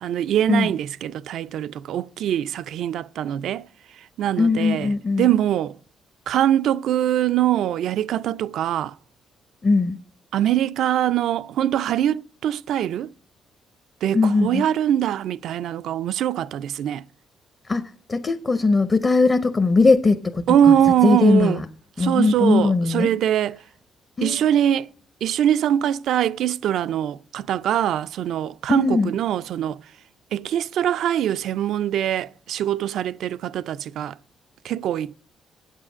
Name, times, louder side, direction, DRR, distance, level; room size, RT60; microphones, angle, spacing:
voice 1, 0.0-3.6 4.2-4.9 5.2-5.8 6.3-8.9 10.3-13.1 14.0-17.0 20.5-21.6 22.0-23.6 24.2-24.9 25.2-29.8 30.3-34.1 34.6-35.1, right 10 dB, 75° right, 0.4 m, -22 dB
voice 2, 4.4-5.3 9.6-10.0 14.1-14.6 17.7-20.8 21.0-21.6 22.0-23.1 24.2-24.8 28.7-29.1, left 3 dB, 30° left, 0.8 m, -20 dB
8.3 x 7.4 x 6.1 m
cardioid pair, 90°, 0 cm